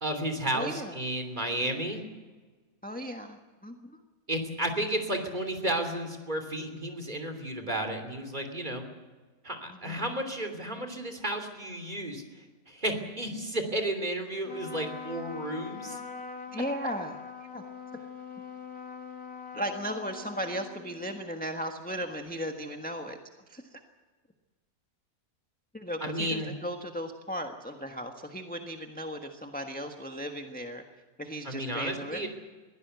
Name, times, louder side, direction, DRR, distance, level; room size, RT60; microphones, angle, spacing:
voice 1, 0.0-2.0 4.3-8.8 9.4-16.0 26.0-26.5 31.4-32.3, right 1 dB, 30° right, 6 dB, 3.2 m, -32 dB
voice 2, 0.5-1.0 2.8-3.8 9.7-10.0 16.5-17.1 17.4-17.6 19.5-23.2 23.5-23.8 25.7-30.8 31.2-32.3, equal, 5° left, 4 dB, 1.3 m, -36 dB
Trumpet, 14.4-21.3, left 6 dB, 70° left, 1.9 m, -43 dB
22.5 x 16.0 x 8.2 m, 1.3 s
omnidirectional pair, 1.6 m